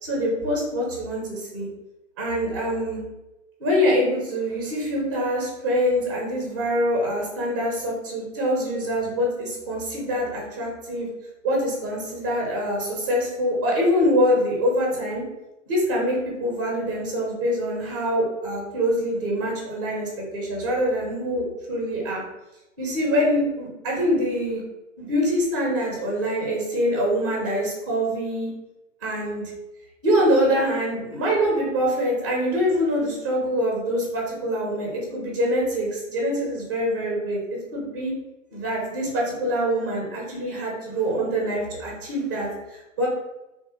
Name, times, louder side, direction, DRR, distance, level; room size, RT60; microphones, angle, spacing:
voice 1, 0.0-1.7 2.2-3.0 3.6-11.1 11.4-15.2 15.7-22.2 22.8-24.6 25.0-28.5 29.0-29.5 30.0-38.1 38.5-43.1, equal, 20° right, -2 dB, 0.4 m, -24 dB
3.1 x 2.4 x 2.6 m, 0.98 s
hypercardioid pair, 135°, 38 cm